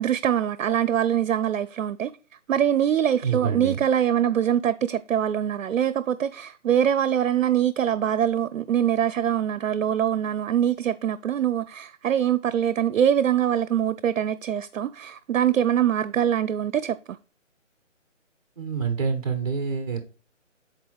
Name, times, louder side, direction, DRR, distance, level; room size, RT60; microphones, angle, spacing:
voice 1, 0.0-2.1 2.5-17.2, right 9 dB, 80° right, 0.5 m, -23 dB
voice 2, 3.2-3.8 18.6-20.0, right 6 dB, 30° right, 0.6 m, -27 dB
8.0 x 4.1 x 3.1 m
hypercardioid pair, 165°, 38 cm